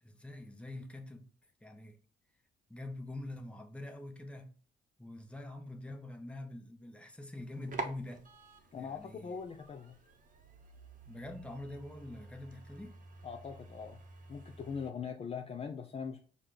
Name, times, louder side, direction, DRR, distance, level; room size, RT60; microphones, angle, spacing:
voice 1, 0.0-1.3 1.6-2.0 2.7-4.6 5.0-8.3 8.8-9.4 11.1-13.0, left 1 dB, 5° left, 0.7 m, -45 dB
sound 1, 7.3-14.9, right 3 dB, 40° right, 0.8 m, -48 dB
voice 2, 8.7-10.0 13.2-14.0 14.3-16.2, left 6 dB, 30° left, 0.4 m, -41 dB
4.8 x 2.3 x 3.7 m
cardioid pair, 90°, 20 cm